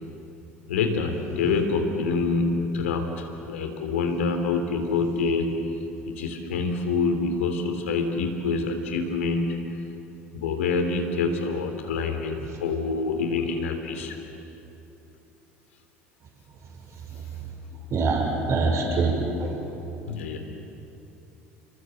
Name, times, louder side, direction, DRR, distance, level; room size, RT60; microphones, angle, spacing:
voice 1, 0.7-5.7 6.0-9.7 10.3-14.2 20.1-20.4, left 4 dB, 75° left, 5 dB, 3.2 m, -26 dB
voice 2, 17.9-19.6, right 3 dB, 45° right, 1 dB, 6.3 m, -24 dB
29.5 x 25.0 x 7.9 m, 3.0 s
hypercardioid pair, 70°, 7 cm